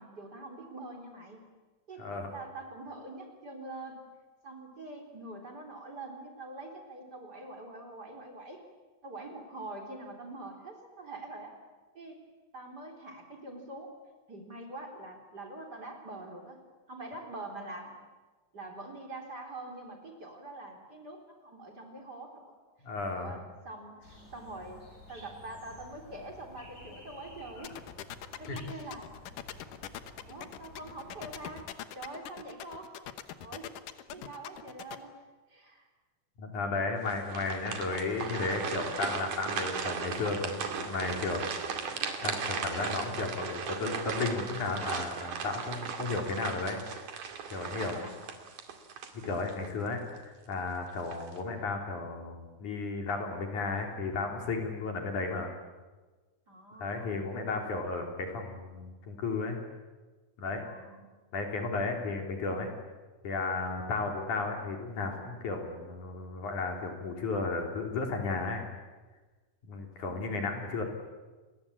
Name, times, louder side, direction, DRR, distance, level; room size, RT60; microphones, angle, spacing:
voice 1, 0.0-1.5 1.9-2.0 2.3-4.1 4.4-8.6 9.0-11.5 11.9-12.2 12.5-13.9 14.3-16.6 16.9-18.0 18.5-22.5 23.1-27.8 28.2-29.1 30.3-31.7 31.9-33.0 33.4-33.7 34.1-35.2 35.5-35.9 36.6-36.8 37.2-37.3 47.7-48.1 56.5-57.2 60.6-61.1 70.1-70.7, right 2 dB, 30° right, 2 dB, 4.0 m, -45 dB
voice 2, 2.0-2.3 22.8-23.3 28.5-28.6 36.4-41.4 42.2-46.8 47.5-48.1 49.2-50.0 50.5-55.5 56.8-59.6 60.4-60.6 61.3-62.7 63.2-68.7 69.7-70.8, left 3 dB, 70° left, 3 dB, 5.0 m, -34 dB
sound 1, 24.0-31.7, left 1 dB, 25° left, 8.1 m, -52 dB
sound 2, 27.6-35.0, left 11 dB, 90° left, 2.8 m, -42 dB
sound 3, 37.0-49.7 50.1-50.3 50.9-51.4, right 6 dB, 80° right, 3.9 m, -37 dB
28.5 x 21.5 x 8.7 m, 1.3 s
omnidirectional pair, 3.6 m